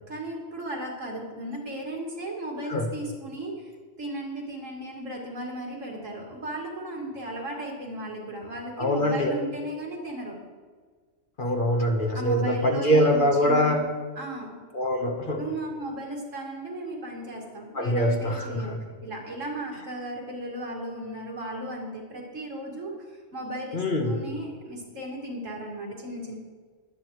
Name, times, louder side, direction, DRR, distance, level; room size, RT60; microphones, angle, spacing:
voice 1, 0.1-3.7 4.0-10.4 12.1-13.9 14.2-14.6 15.4-26.4, right 1 dB, 90° right, -1 dB, 2.6 m, -36 dB
voice 2, 8.8-9.3 11.4-13.8 14.7-15.4 17.7-18.8 23.7-24.2, equal, 45° left, 3 dB, 1.4 m, -23 dB
21.5 x 8.7 x 3.2 m, 1.5 s
omnidirectional pair, 1.3 m